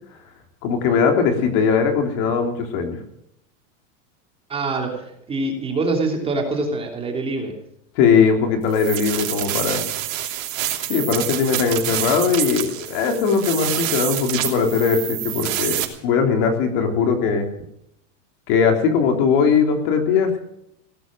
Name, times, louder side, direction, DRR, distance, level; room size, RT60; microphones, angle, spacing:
voice 1, 0.6-3.0 7.9-9.8 10.9-17.5 18.5-20.4, left 6 dB, 50° left, 4 dB, 3.4 m, -20 dB
voice 2, 4.5-7.5, right 3 dB, 15° right, 2 dB, 3.0 m, -25 dB
sound 1, 8.7-15.8, right 13 dB, 85° right, 3.1 m, -27 dB
17.5 x 13.0 x 6.3 m, 0.76 s
supercardioid pair, 160°, 38 cm